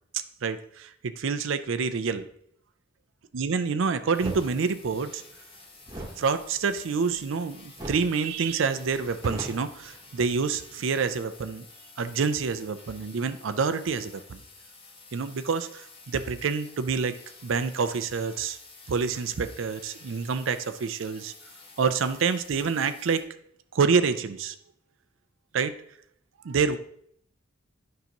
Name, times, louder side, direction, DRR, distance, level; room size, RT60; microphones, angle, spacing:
voice 1, 0.1-2.3 3.3-5.2 6.2-11.7 12.0-14.4 15.1-17.2 17.4-18.6 18.9-21.3 21.8-23.2 23.7-24.6 25.5-25.8 26.4-26.8, right 5 dB, 70° right, 11 dB, 0.5 m, -27 dB
sound 1, 4.1-23.2, left 3 dB, 30° left, 1.2 m, -51 dB
sound 2, 4.2-4.5 5.8-7.4 7.8-8.1 8.4-8.5 8.9-10.4, right 1 dB, 20° right, 1.2 m, -39 dB
9.4 x 5.6 x 2.9 m, 0.67 s
head